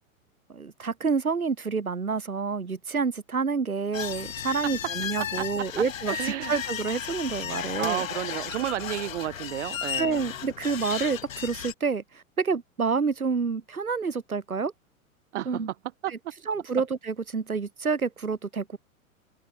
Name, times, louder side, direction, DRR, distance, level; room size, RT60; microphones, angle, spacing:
voice 1, 0.5-8.0 10.0-14.7 15.4-15.7 16.5-18.8, right 5 dB, 85° right, 1.5 m, -28 dB
sound 1, 3.9-11.7, left 10 dB, 70° left, 0.9 m, -34 dB
voice 2, 5.8-6.6 7.8-10.3 15.3-15.6 16.0-16.1, right 13 dB, 55° right, 1.9 m, -32 dB
figure-of-eight pair, 100°, 42 cm